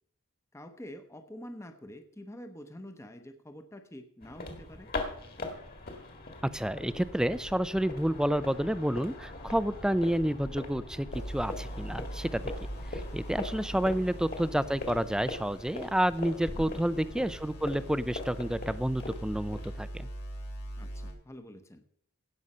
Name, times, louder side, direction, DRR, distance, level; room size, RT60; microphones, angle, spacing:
voice 1, 0.5-4.9 16.5-16.8 20.8-21.8, equal, 15° left, 7 dB, 0.8 m, -47 dB
sound 1, 4.2-19.8, left 2 dB, 45° left, 2.0 m, -41 dB
voice 2, 6.5-12.5 12.9-20.1, equal, 5° right, 15 dB, 0.4 m, -30 dB
sound 2, 11.1-21.1, right 1 dB, 75° left, 3.0 m, -42 dB
17.0 x 6.4 x 5.5 m, 0.67 s
head